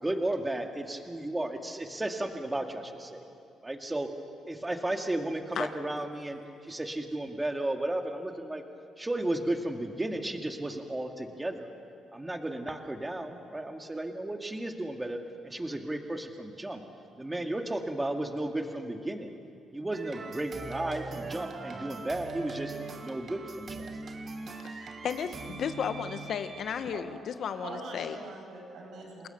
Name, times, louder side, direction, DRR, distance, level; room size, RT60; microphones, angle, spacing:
voice 1, 0.0-3.2 3.6-4.1 4.5-6.4 6.7-8.6 9.0-11.7 12.1-15.2 15.4-16.8 17.2-19.3 19.7-22.7 23.0-23.9, right 1 dB, 15° right, 4 dB, 2.2 m, -34 dB
sound 1, 19.9-26.8, right 4 dB, 45° right, 1.9 m, -41 dB
voice 2, 24.6-28.2, left 7 dB, 65° left, 10 dB, 1.2 m, -34 dB
voice 3, 27.5-29.3, right 2 dB, 75° right, -3 dB, 7.6 m, -43 dB
28.5 x 20.0 x 6.9 m, 2.4 s
cardioid pair, 90°, 0 cm